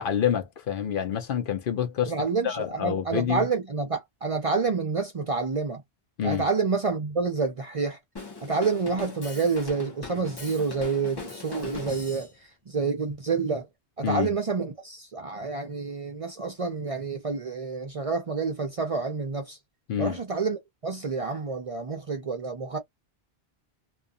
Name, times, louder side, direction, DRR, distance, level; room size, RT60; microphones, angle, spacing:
voice 1, 0.0-2.1 2.4-3.4 6.2-6.5 14.0-14.3 19.9-20.2, left 9 dB, 60° left, 0.7 m, -27 dB
voice 2, 2.1-5.8 6.2-8.0 8.4-13.7 14.0-19.6 20.0-22.8, right 4 dB, 45° right, 0.5 m, -28 dB
Drum kit, 8.2-12.3, left 4 dB, 25° left, 0.9 m, -40 dB
2.4 x 2.3 x 2.4 m
omnidirectional pair, 1.0 m